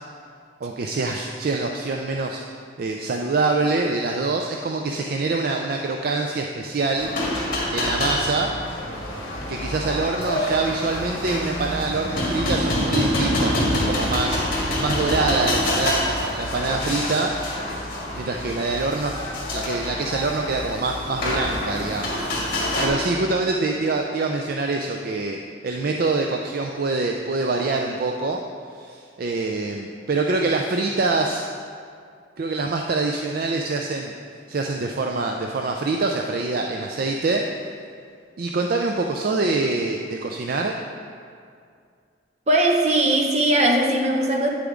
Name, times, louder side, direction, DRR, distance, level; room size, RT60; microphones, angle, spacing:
voice 1, 0.6-2.4 2.8-7.1 7.7-8.5 9.5-17.3 18.1-19.1 19.5-22.3 22.8-25.4 25.6-28.4 28.8-31.5 32.4-34.1 34.5-37.4 38.4-40.7, right 3 dB, 50° right, 2 dB, 0.4 m, -25 dB
sound 1, 7.0-22.9, left 1 dB, 50° left, 1.7 m, -26 dB
voice 2, 42.5-44.5, right 1 dB, 35° right, 1 dB, 0.8 m, -19 dB
9.1 x 6.8 x 3.7 m, 2.3 s
head